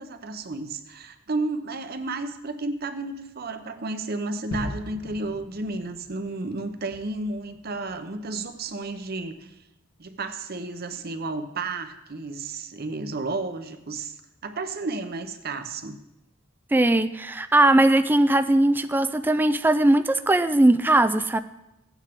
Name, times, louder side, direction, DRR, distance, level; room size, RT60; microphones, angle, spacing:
voice 1, 0.0-9.5 10.0-14.1 14.4-16.0, right 3 dB, 50° right, 8 dB, 0.8 m, -32 dB
Gunshot gunfire / Fireworks / Boom, 4.5-9.3, left 1 dB, 70° left, 1.4 m, -41 dB
voice 2, 16.7-21.4, right 1 dB, 10° right, 11 dB, 0.3 m, -19 dB
15.5 x 9.0 x 3.6 m, 0.92 s
head